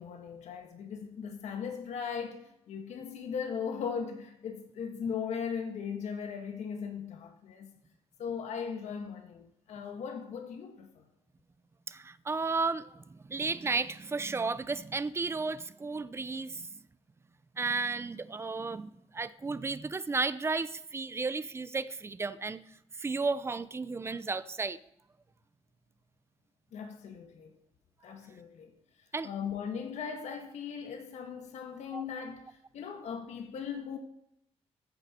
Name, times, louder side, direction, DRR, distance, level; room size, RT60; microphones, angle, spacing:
voice 1, 0.0-7.7 8.2-11.0 26.7-27.6 28.0-28.7 29.2-34.0, left 6 dB, 85° left, 1.7 m, -38 dB
voice 2, 11.9-16.7 17.6-22.6 23.0-24.8 29.1-29.3 31.9-32.0, right 4 dB, 20° right, 0.6 m, -33 dB
14.5 x 9.2 x 4.4 m
cardioid pair, 130°, 11 cm